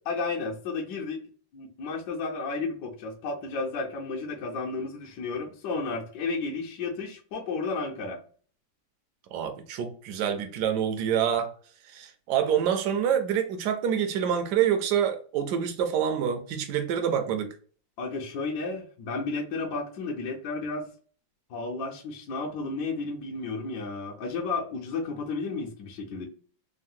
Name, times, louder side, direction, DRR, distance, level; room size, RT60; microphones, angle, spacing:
voice 1, 0.1-1.2 1.5-8.2 18.0-20.9 21.5-26.3, left 3 dB, 70° left, 1.1 m, -32 dB
voice 2, 9.3-11.5 11.9-17.5, right 8 dB, 70° right, 1.0 m, -26 dB
3.5 x 2.0 x 2.5 m
omnidirectional pair, 2.1 m